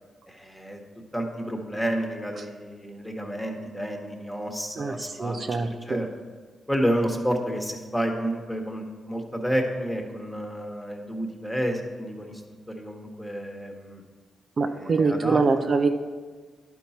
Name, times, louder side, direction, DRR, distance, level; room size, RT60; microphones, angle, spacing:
voice 1, 0.3-0.8 1.1-6.1 6.7-12.4 12.7-14.0 14.7-15.4, equal, 5° left, 2 dB, 1.3 m, -30 dB
voice 2, 4.8-6.0 14.6-15.9, right 4 dB, 55° right, 5 dB, 0.5 m, -24 dB
11.5 x 4.6 x 4.2 m, 1.5 s
cardioid pair, 75°, 0 cm